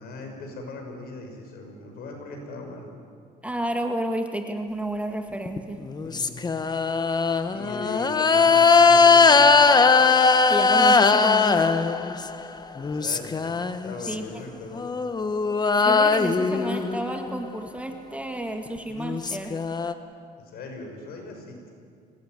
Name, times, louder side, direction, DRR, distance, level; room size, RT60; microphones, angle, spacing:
voice 1, 0.0-2.9 6.0-6.6 7.0-9.7 12.8-13.5 13.8-14.9 20.4-21.6, left 3 dB, 65° left, 3 dB, 6.2 m, -39 dB
voice 2, 3.4-5.8 10.5-11.8 14.1-14.5 15.8-19.6, right 1 dB, 10° right, 5 dB, 1.9 m, -31 dB
sound 1, 5.5-12.4 12.8-14.1 14.7-17.4 18.7-18.8 19.0-19.9, left 4 dB, 25° left, 1.2 m, -20 dB
25.0 x 19.0 x 9.4 m, 2.3 s
cardioid pair, 110°, 17 cm